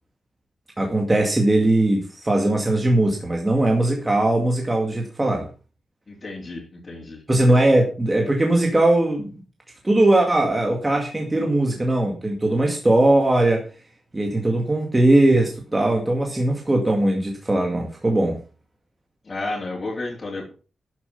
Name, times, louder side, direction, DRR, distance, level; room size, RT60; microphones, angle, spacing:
voice 1, 0.8-5.5 7.3-9.3 9.8-13.7 14.1-18.4, right 1 dB, 15° right, 1 dB, 2.1 m, -20 dB
voice 2, 6.1-7.2 19.2-20.5, left 2 dB, 30° left, -4 dB, 3.3 m, -32 dB
12.5 x 7.4 x 5.3 m, 0.35 s
wide cardioid pair, 170°, 0 cm